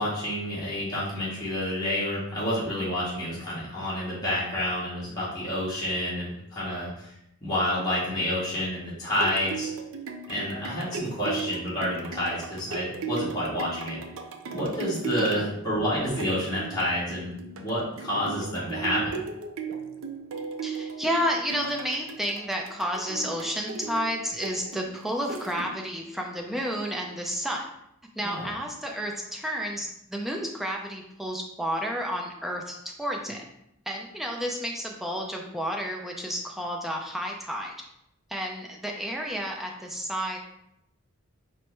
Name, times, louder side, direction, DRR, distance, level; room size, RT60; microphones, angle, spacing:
voice 1, 0.0-7.1 7.4-9.7 10.3-14.0 14.5-19.2 28.2-28.5, left 1 dB, 20° left, -9 dB, 1.3 m, -29 dB
sound 1, 8.9-26.0 26.5-26.6, right 5 dB, 65° right, 0.4 m, -37 dB
voice 2, 20.6-27.6 28.2-33.4 33.9-37.7 38.3-40.4, equal, ahead, 0 dB, 0.4 m, -31 dB
4.6 x 2.1 x 4.5 m, 0.79 s
head